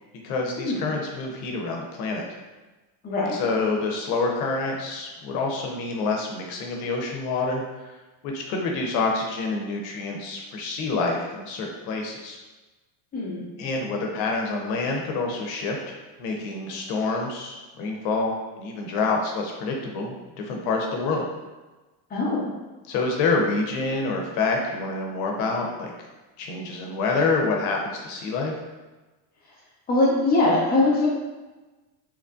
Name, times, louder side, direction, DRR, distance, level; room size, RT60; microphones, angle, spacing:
voice 1, 0.2-2.2 3.3-7.6 8.2-12.4 13.6-21.3 22.9-25.9 26.4-28.5, left 3 dB, 90° left, 1 dB, 0.7 m, -27 dB
voice 2, 3.0-3.3 13.1-13.4 22.1-22.4 29.9-31.1, left 2 dB, 20° left, -4 dB, 0.6 m, -21 dB
3.0 x 2.5 x 2.3 m, 1.2 s
cardioid pair, 150°, 45 cm